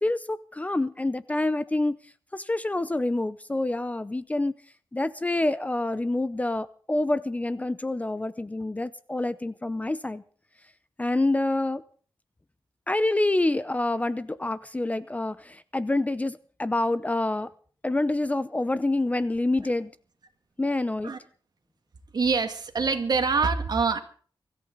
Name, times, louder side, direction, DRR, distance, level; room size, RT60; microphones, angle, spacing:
voice 1, 0.0-4.5 4.9-10.2 11.0-11.8 12.9-17.5 17.8-19.9 20.6-21.1, left 2 dB, 15° left, 15 dB, 0.7 m, -27 dB
voice 2, 22.1-24.0, right 4 dB, 55° right, 6 dB, 2.3 m, -25 dB
24.0 x 14.0 x 4.0 m, 0.44 s
wide cardioid pair, 120°, 8 cm